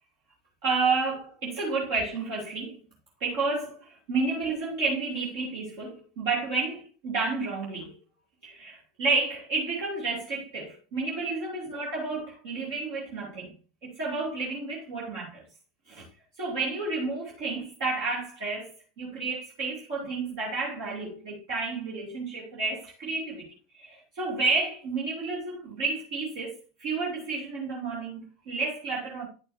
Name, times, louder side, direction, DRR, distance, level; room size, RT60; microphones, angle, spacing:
voice 1, 0.6-2.8 3.2-7.9 8.4-13.5 13.8-15.4 15.9-16.0 16.4-23.5 23.7-29.3, right 3 dB, 60° right, 2.8 m, -31 dB
10.5 x 6.6 x 2.7 m
figure-of-eight pair, 80°, 0 cm